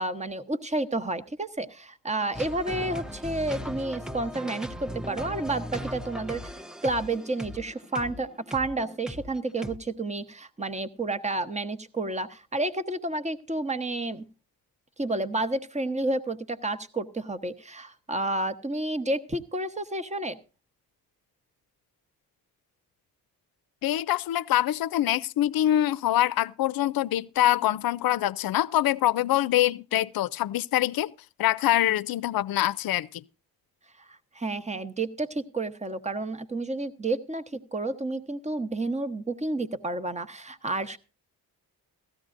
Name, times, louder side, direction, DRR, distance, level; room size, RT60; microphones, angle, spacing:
voice 1, 0.0-6.4 6.8-14.3 15.0-20.4 34.1-41.0, right 2 dB, 20° right, 1.0 m, -30 dB
sound 1, 2.3-9.8, equal, ahead, 0.5 m, -38 dB
voice 2, 23.8-31.1 31.4-33.2, left 13 dB, 70° left, 0.5 m, -24 dB
16.5 x 14.0 x 2.5 m
cardioid pair, 80°, 36 cm